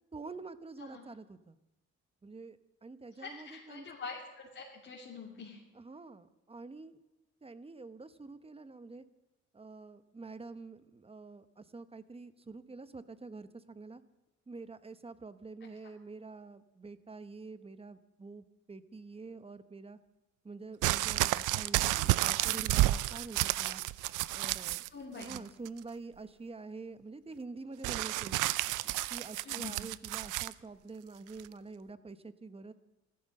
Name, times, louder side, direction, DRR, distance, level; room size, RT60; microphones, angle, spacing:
voice 1, 0.1-1.6 2.2-3.8 5.8-6.9 7.4-9.0 9.5-14.0 14.5-20.0 20.4-23.8 24.3-24.8 25.1-28.4 28.8-32.7, right 3 dB, 20° right, 12 dB, 0.9 m, -47 dB
voice 2, 3.2-5.6 22.0-22.2 24.9-25.3 29.4-29.8, left 4 dB, 40° left, -5 dB, 2.8 m, -45 dB
sound 1, 20.8-24.9 25.2-25.8 27.8-30.5 31.4-31.5, right 17 dB, 85° right, 0.5 m, -31 dB
14.5 x 13.5 x 6.5 m, 1.0 s
cardioid pair, 90°, 30 cm